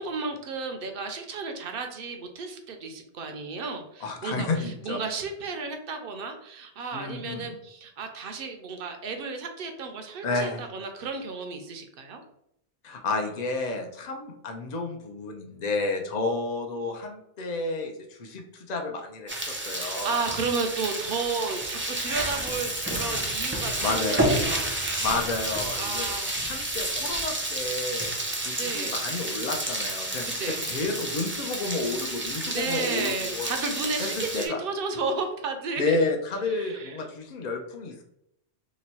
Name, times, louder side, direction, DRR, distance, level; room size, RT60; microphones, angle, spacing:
voice 1, 0.0-12.2 19.8-24.7 25.7-26.3 28.5-29.0 30.2-30.6 32.5-36.0 36.5-37.0, right 4 dB, 60° right, 5 dB, 0.7 m, -33 dB
voice 2, 4.0-5.0 6.9-7.5 10.2-10.6 12.8-20.2 22.9-23.4 23.8-24.2 25.0-28.1 28.4-33.5 34.0-34.6 35.8-38.0, left 3 dB, 50° left, 2 dB, 0.6 m, -31 dB
sound 1, 19.3-34.5, right 1 dB, 20° right, 0.3 m, -30 dB
3.0 x 2.2 x 4.1 m, 0.77 s
omnidirectional pair, 1.2 m